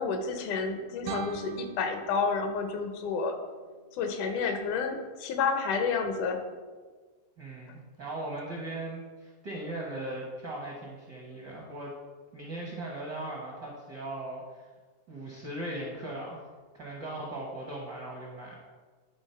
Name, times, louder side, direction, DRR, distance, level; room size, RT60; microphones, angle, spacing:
voice 1, 0.0-3.4 3.9-6.4, left 5 dB, 80° left, 6 dB, 2.3 m, -30 dB
sound 1, 1.0-4.1, right 5 dB, 85° right, 2.1 m, -43 dB
voice 2, 7.4-11.9 12.3-14.7 15.1-16.4 16.7-18.6, right 1 dB, 65° right, -3 dB, 1.0 m, -38 dB
9.6 x 3.7 x 5.5 m, 1.4 s
omnidirectional pair, 3.5 m